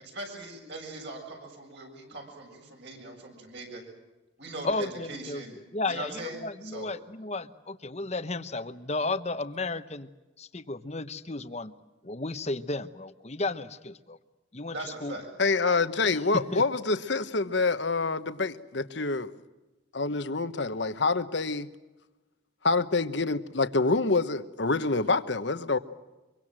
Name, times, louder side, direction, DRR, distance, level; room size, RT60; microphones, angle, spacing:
voice 1, 0.1-3.8 4.4-5.6 5.9-6.9 14.7-15.3, right 2 dB, 60° right, 1 dB, 7.6 m, -40 dB
voice 2, 4.6-5.4 5.7-10.1 10.4-11.7 12.0-14.2 14.5-15.1 16.0-16.6, left 2 dB, 35° left, 12 dB, 1.0 m, -33 dB
voice 3, 15.4-19.3 19.9-21.7 22.6-25.8, left 3 dB, 65° left, 12 dB, 1.2 m, -26 dB
25.0 x 24.0 x 7.6 m, 1.1 s
head